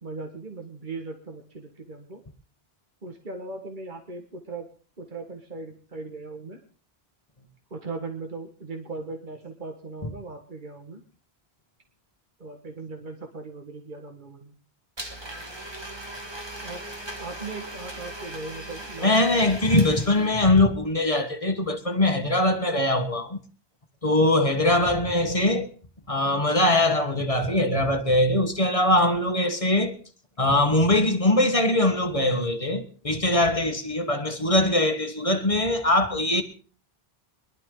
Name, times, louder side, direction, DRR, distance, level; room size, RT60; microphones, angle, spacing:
voice 1, 0.0-2.2 3.0-4.7 5.0-6.6 7.7-11.0 12.4-14.5 16.6-16.8 17.2-19.9 24.5-24.6 34.7-34.8, right 3 dB, 50° right, 1.8 m, -38 dB
Domestic sounds home sounds, 15.0-20.6, right 1 dB, 25° right, 1.8 m, -39 dB
voice 2, 19.0-23.4 24.0-25.7 26.1-29.9 30.4-36.4, left 1 dB, 35° left, 1.5 m, -22 dB
22.5 x 12.0 x 3.8 m
omnidirectional pair, 1.0 m